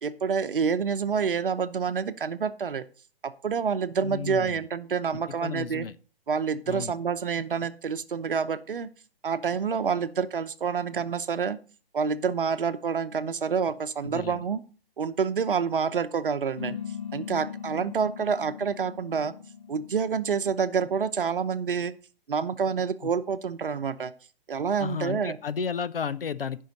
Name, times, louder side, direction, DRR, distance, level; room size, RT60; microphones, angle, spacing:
voice 1, 0.0-2.8 3.2-5.8 6.3-8.9 9.2-11.6 11.9-14.6 15.0-16.8 17.1-19.3 19.7-21.9 22.3-24.1 24.5-25.4, right 6 dB, 65° right, 12 dB, 0.9 m, -28 dB
voice 2, 4.0-4.7 5.1-5.9 6.7-6.9 14.0-14.4 23.0-23.1 24.8-26.6, left 6 dB, 70° left, 14 dB, 0.7 m, -33 dB
sound 1, 16.6-21.5, left 8 dB, 50° left, 1.3 m, -40 dB
15.0 x 5.7 x 4.0 m, 0.38 s
figure-of-eight pair, 130°, 29 cm